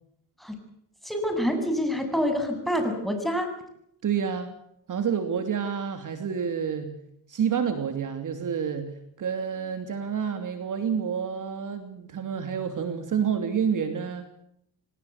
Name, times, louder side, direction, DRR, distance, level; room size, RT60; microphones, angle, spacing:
voice 1, 1.0-3.5, equal, ahead, 5 dB, 7.7 m, -26 dB
voice 2, 4.0-4.5 4.9-6.9 7.3-8.9 9.2-14.3, right 7 dB, 50° right, 8 dB, 3.0 m, -28 dB
25.5 x 19.0 x 8.3 m, 0.72 s
cardioid pair, 90°, 40 cm